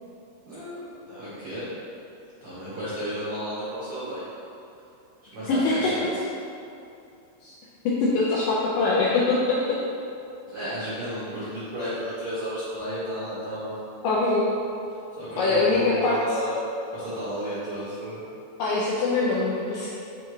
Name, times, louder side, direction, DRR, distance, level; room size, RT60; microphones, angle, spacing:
voice 1, 0.5-1.6 2.4-4.2 5.3-6.2 10.5-13.7 15.2-16.6 16.9-18.2, equal, 70° right, -11 dB, 1.3 m, -32 dB
voice 2, 5.5-5.9 7.4-7.6 7.9-9.8 14.0-14.5 15.4-16.2 18.6-19.9, left 3 dB, 80° left, -6 dB, 1.9 m, -23 dB
6.5 x 3.5 x 4.6 m, 2.7 s
omnidirectional pair, 4.5 m